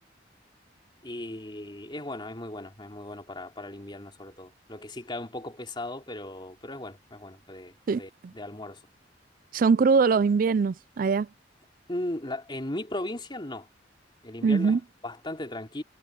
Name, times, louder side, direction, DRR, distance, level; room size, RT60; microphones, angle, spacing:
voice 1, 1.0-8.8 11.9-13.7 14.2-15.8, left 1 dB, 25° left, 2.9 m, -37 dB
voice 2, 9.5-11.3 14.4-14.8, right 5 dB, 50° right, 0.4 m, -22 dB
head